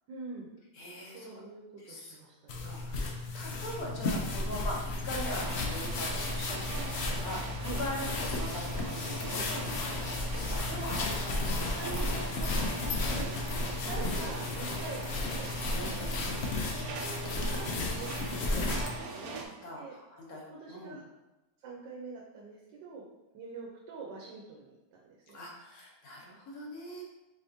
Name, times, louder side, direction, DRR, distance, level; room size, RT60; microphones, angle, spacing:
voice 1, 0.1-0.6 1.0-2.8 7.6-7.8 10.9-11.0 11.7-15.5 16.7-18.7 19.8-19.9 20.5-21.0 21.6-23.1 23.3-25.4, right 4 dB, 85° right, -2 dB, 1.3 m, -45 dB
voice 2, 0.7-1.4 1.8-2.2 2.6-11.9 13.8-14.1 15.7-16.4 19.0-21.0 25.3-27.0, equal, 60° left, -2 dB, 1.3 m, -42 dB
sound 1, 2.5-19.0, left 2 dB, 80° left, 0.5 m, -34 dB
sound 2, 3.9-11.2, left 1 dB, 50° right, 1.6 m, -46 dB
sound 3, 5.3-19.5, right 4 dB, 70° right, 1.0 m, -42 dB
4.9 x 3.4 x 2.7 m, 1.0 s
omnidirectional pair, 1.9 m